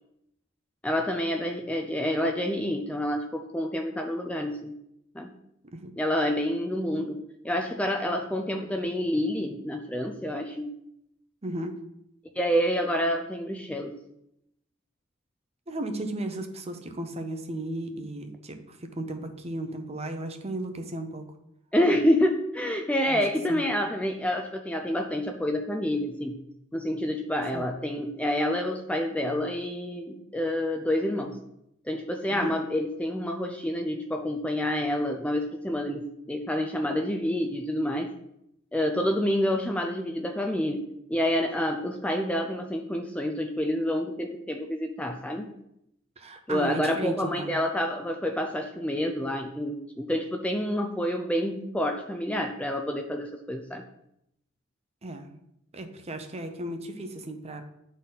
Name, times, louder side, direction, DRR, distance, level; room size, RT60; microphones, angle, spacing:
voice 1, 0.8-4.7 5.1-5.3 6.0-10.7 12.4-13.9 21.7-26.4 26.7-31.4 31.9-38.1 38.7-45.5 46.5-53.8, equal, 5° left, 4 dB, 0.4 m, -28 dB
voice 2, 11.4-11.7 15.7-21.3 23.1-23.2 23.5-23.6 27.5-27.6 32.3-32.5 46.2-47.5 55.0-55.3 55.7-57.6, right 1 dB, 30° right, 7 dB, 0.7 m, -35 dB
9.0 x 4.2 x 4.0 m, 0.80 s
head